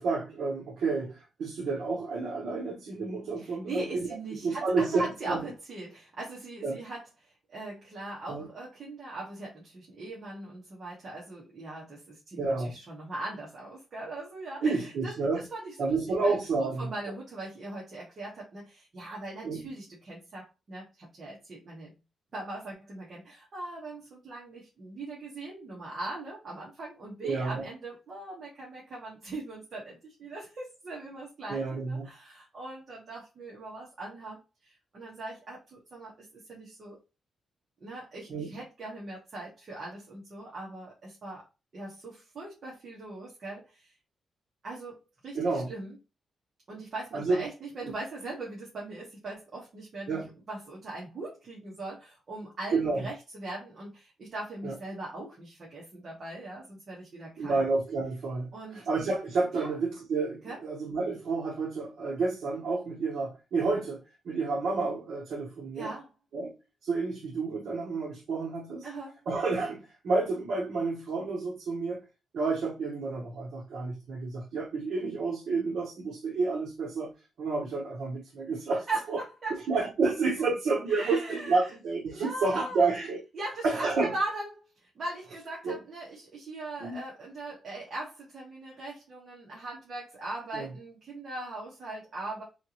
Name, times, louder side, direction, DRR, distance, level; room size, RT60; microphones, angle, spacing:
voice 1, 0.0-4.1 4.4-5.4 6.6-6.8 8.3-8.5 12.4-12.7 14.6-15.4 15.8-17.1 19.4-19.7 27.2-27.6 31.5-32.1 38.3-38.5 45.3-45.7 47.1-47.4 50.1-50.3 52.7-53.1 54.6-54.7 57.4-65.9 66.3-66.6 66.8-68.8 69.3-72.0 72.3-79.2 79.7-83.2 83.6-84.1 85.6-85.8 86.8-87.0 90.5-90.7, right 3 dB, 65° right, 1.0 m, -30 dB
voice 2, 3.4-16.0 16.2-21.9 22.3-37.0 37.8-41.4 41.7-43.9 44.6-45.0 45.2-46.0 46.7-57.6 58.5-58.9 59.5-59.7 60.4-60.6 65.7-66.1 68.8-69.2 78.9-79.6 80.9-81.6 82.1-82.9 83.3-92.4, right 2 dB, 35° right, 1.4 m, -40 dB
3.8 x 3.4 x 3.0 m
wide cardioid pair, 180°, 0 cm